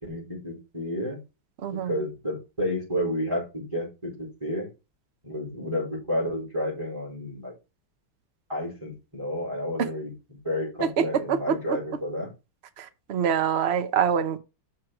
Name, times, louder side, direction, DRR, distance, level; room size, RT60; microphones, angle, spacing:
voice 1, 0.0-1.2 1.7-4.7 5.2-7.5 8.5-12.3, left 1 dB, 15° right, 4.4 m, -31 dB
voice 2, 1.6-1.9 10.8-11.8 12.8-14.4, right 7 dB, 60° right, 0.6 m, -25 dB
6.3 x 4.6 x 5.9 m
omnidirectional pair, 2.2 m